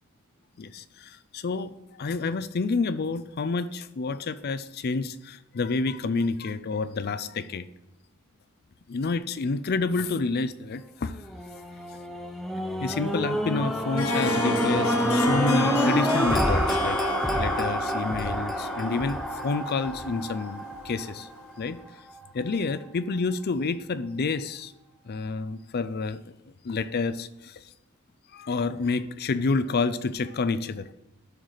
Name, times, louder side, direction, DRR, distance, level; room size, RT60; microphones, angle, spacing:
voice 1, 0.6-1.7 2.0-7.7 8.9-11.1 12.8-17.0 17.4-21.3 21.6-21.8 22.3-24.7 25.1-26.2 26.6-27.5 28.3-30.9, left 4 dB, 50° left, 13 dB, 0.4 m, -29 dB
sound 1, 11.2-21.5 22.1-22.2, equal, ahead, 0.7 m, -27 dB
Harp, 13.7-21.4, left 3 dB, 75° left, 0.7 m, -33 dB
12.0 x 4.8 x 4.0 m, 0.89 s
head